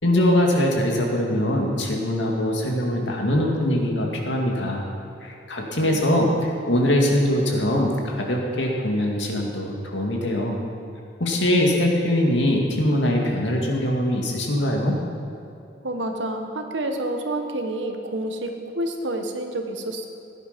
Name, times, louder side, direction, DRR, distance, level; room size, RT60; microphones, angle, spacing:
voice 1, 0.0-4.8 5.2-10.6 11.2-15.0, left 1 dB, 75° left, 0 dB, 2.2 m, -22 dB
voice 2, 15.8-20.1, right 1 dB, 75° right, 5 dB, 1.4 m, -29 dB
17.0 x 10.5 x 5.3 m, 2.7 s
head